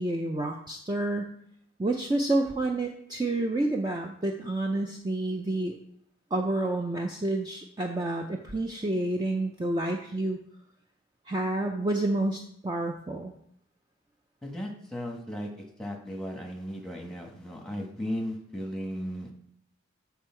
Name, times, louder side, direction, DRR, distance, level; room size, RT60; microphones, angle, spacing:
voice 1, 0.0-1.3 1.8-5.8 6.3-10.4 11.3-13.3, right 2 dB, 20° right, 2 dB, 0.5 m, -29 dB
voice 2, 14.4-15.5 15.8-19.3, equal, 5° left, 1 dB, 1.1 m, -36 dB
7.9 x 4.6 x 4.4 m, 0.69 s
head